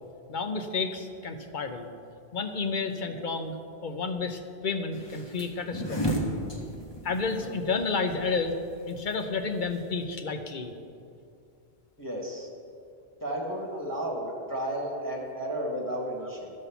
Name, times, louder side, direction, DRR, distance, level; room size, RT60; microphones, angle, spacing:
voice 1, 0.3-1.9 2.3-6.2 7.0-8.5 8.9-10.7, left 4 dB, 50° left, 6 dB, 0.9 m, -31 dB
sound 1, 4.9-10.0, equal, 25° left, 1.3 m, -34 dB
voice 2, 12.0-12.5 13.2-16.5, right 1 dB, 20° right, -1 dB, 1.7 m, -33 dB
13.0 x 5.5 x 6.9 m, 2.5 s
omnidirectional pair, 1.1 m